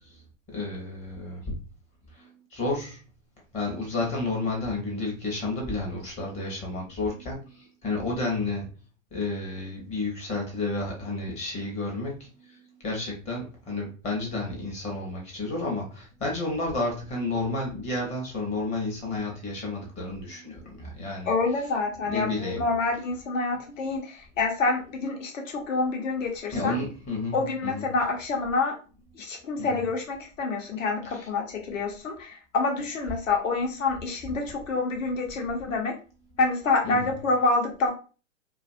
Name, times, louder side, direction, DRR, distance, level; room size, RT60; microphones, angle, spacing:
voice 1, 0.5-1.4 2.2-3.0 3.5-8.7 9.1-12.6 12.8-21.3 22.1-22.6 26.5-27.7 29.6-29.7 36.8-37.1, left 2 dB, 15° left, 0.7 m, -31 dB
voice 2, 21.3-26.8 27.3-28.7 29.1-35.9 36.4-37.9, left 3 dB, 75° left, 0.9 m, -27 dB
2.5 x 2.4 x 2.5 m
hypercardioid pair, 125°, 39 cm